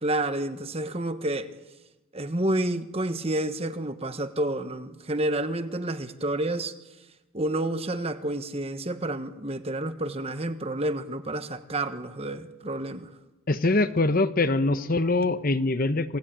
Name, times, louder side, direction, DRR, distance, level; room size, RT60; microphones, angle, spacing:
voice 1, 0.0-1.5 2.1-6.7 7.3-13.1, right 1 dB, 25° right, 10 dB, 1.2 m, -29 dB
voice 2, 13.5-16.2, left 2 dB, 40° left, 11 dB, 1.0 m, -23 dB
27.0 x 19.0 x 8.9 m, 1.0 s
head